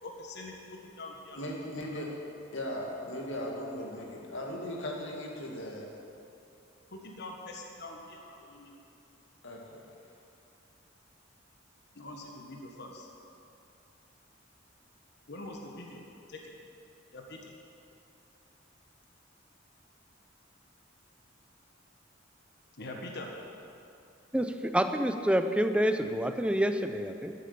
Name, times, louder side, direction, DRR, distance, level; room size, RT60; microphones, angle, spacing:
voice 1, 0.0-1.4 1.7-1.9 6.9-8.7 11.9-13.1 15.3-16.0 16.3-16.5 17.1-17.5 22.8-23.3, left 2 dB, 60° left, 1 dB, 1.4 m, -44 dB
voice 2, 1.4-2.1 2.5-5.9 9.4-9.8, left 1 dB, 75° left, -1 dB, 2.2 m, -38 dB
voice 3, 24.3-27.3, equal, 5° right, 7 dB, 0.5 m, -28 dB
12.5 x 8.6 x 6.9 m, 2.6 s
head